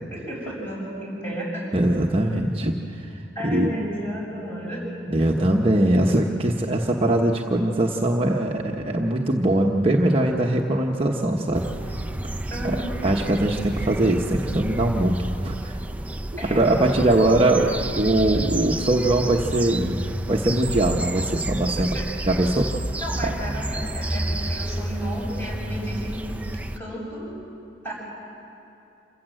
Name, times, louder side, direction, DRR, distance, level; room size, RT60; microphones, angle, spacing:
voice 1, 0.1-1.6 3.3-4.8 12.5-13.2 16.4-17.9 21.9-22.2 23.0-26.5 26.8-27.2 27.8-27.9, equal, 10° left, -5 dB, 7.6 m, -33 dB
voice 2, 1.7-3.7 5.1-11.7 12.6-12.8 13.0-15.8 16.5-17.7 17.9-20.0 20.3-21.9 22.3-22.7 23.2-23.3, right 1 dB, 30° right, 0 dB, 1.0 m, -21 dB
sound 1, 11.5-26.8, right 1 dB, 10° right, 0.4 m, -30 dB
27.5 x 15.5 x 7.7 m, 2.8 s
head